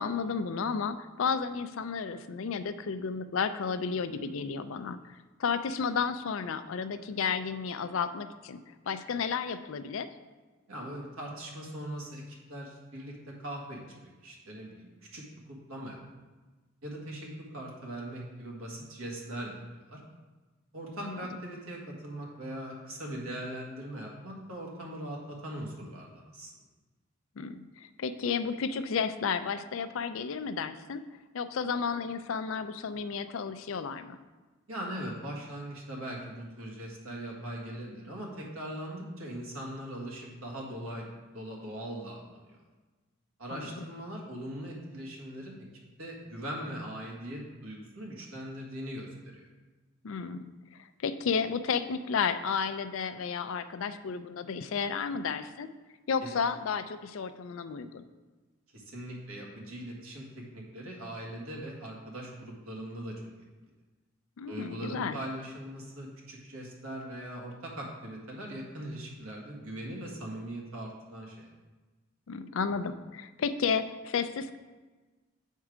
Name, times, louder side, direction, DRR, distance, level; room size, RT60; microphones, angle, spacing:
voice 1, 0.0-5.0 5.4-8.6 8.9-10.1 21.0-21.3 27.4-31.0 31.3-34.2 43.5-43.9 50.0-50.5 51.0-55.7 56.1-58.0 64.4-65.2 72.3-74.6, left 6 dB, 70° left, 11 dB, 0.4 m, -32 dB
voice 2, 10.7-16.0 16.8-19.5 19.9-20.0 20.7-26.5 34.7-41.1 41.3-42.5 43.4-45.7 46.0-49.5 56.2-56.3 58.7-63.1 64.5-71.5, right 1 dB, 80° right, -2 dB, 1.7 m, -40 dB
7.3 x 4.6 x 4.9 m, 1.2 s
head